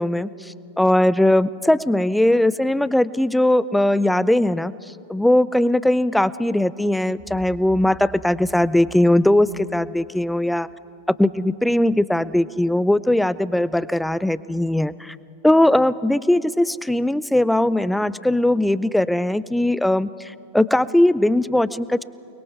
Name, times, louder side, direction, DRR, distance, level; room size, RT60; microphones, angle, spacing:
voice 1, 0.0-4.7 5.1-10.7 11.2-15.2 15.4-22.0, left 1 dB, 5° left, 18 dB, 0.4 m, -19 dB
sound 1, 7.1-11.0, right 3 dB, 15° right, 1.5 m, -46 dB
29.0 x 21.5 x 4.7 m, 2.5 s
figure-of-eight pair, 90°, 0 cm